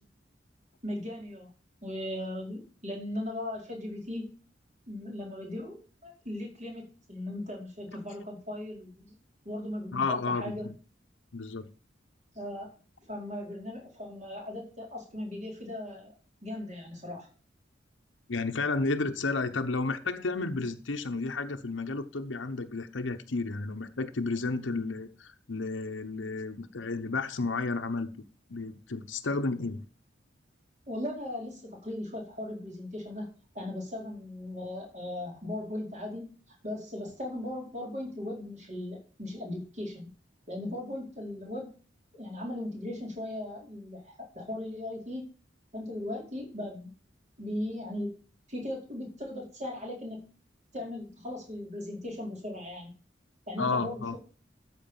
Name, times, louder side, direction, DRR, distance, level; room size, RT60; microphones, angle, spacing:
voice 1, 0.8-1.5 1.8-4.3 4.9-5.8 6.0-9.1 9.4-10.7 12.3-12.7 13.1-16.1 16.4-17.3 30.9-36.3 36.6-40.1 40.5-41.7 42.1-45.2 45.7-46.9 47.4-48.2 48.5-50.2 50.7-52.9 53.5-54.2, left 1 dB, 40° right, 4.6 m, -38 dB
voice 2, 9.9-10.7 11.3-11.7 18.3-28.1 28.5-29.8 53.6-54.2, left 3 dB, 85° left, 0.9 m, -32 dB
13.0 x 4.8 x 7.2 m
head